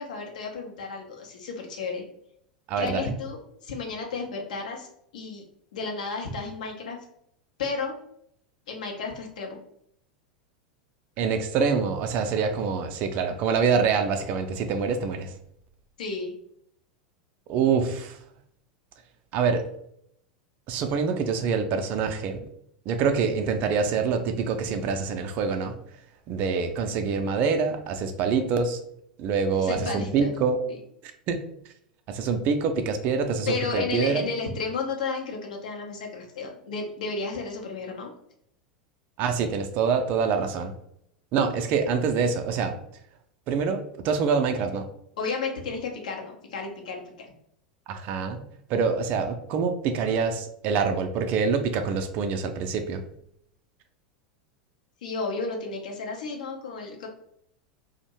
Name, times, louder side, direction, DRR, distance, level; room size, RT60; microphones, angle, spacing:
voice 1, 0.0-2.0 2.8-4.9 5.1-5.4 5.7-7.0 7.6-8.0 8.7-9.6 16.0-16.3 29.6-30.3 33.5-38.1 45.2-47.3 55.0-57.1, left 4 dB, 65° left, 1 dB, 0.6 m, -32 dB
voice 2, 2.7-3.1 11.2-15.3 17.5-18.2 19.3-19.7 20.7-22.5 22.9-25.8 26.3-28.8 29.2-30.6 31.0-31.4 32.1-34.3 39.2-40.7 41.3-42.8 43.5-44.9 47.9-48.4 48.7-53.0, right 5 dB, 40° right, 7 dB, 0.4 m, -25 dB
2.5 x 2.1 x 2.9 m, 0.71 s
figure-of-eight pair, 85°, 4 cm